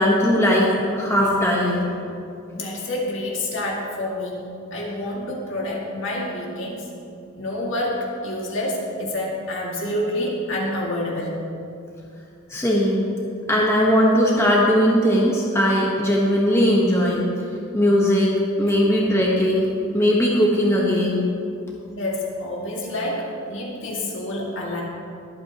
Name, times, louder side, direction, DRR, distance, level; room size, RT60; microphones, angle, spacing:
voice 1, 0.0-1.9 12.5-13.0 13.5-17.3 17.7-18.3 18.6-19.7 19.9-21.2, equal, 10° left, -4 dB, 1.3 m, -19 dB
voice 2, 2.5-4.4 4.7-6.9 7.4-11.4 18.7-18.8 22.0-24.8, left 1 dB, 60° left, -3 dB, 2.3 m, -28 dB
22.5 x 8.6 x 3.1 m, 2.5 s
head